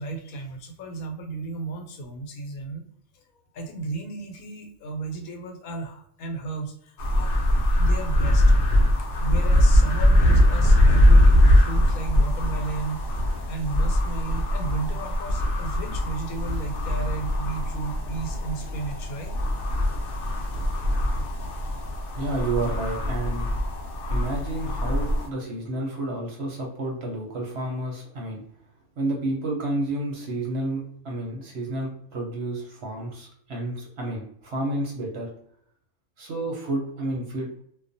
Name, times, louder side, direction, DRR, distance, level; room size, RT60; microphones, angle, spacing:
voice 1, 0.0-2.8 3.1-7.3 7.8-8.5 9.2-19.4, right 3 dB, 85° left, 3 dB, 1.1 m, -34 dB
sound 1, 7.0-25.3, left 1 dB, 65° left, 0.8 m, -21 dB
voice 2, 22.2-23.5 24.1-28.4 29.0-35.3 36.2-37.6, right 2 dB, 60° right, -1 dB, 0.8 m, -30 dB
2.3 x 2.1 x 2.5 m, 0.66 s
omnidirectional pair, 1.4 m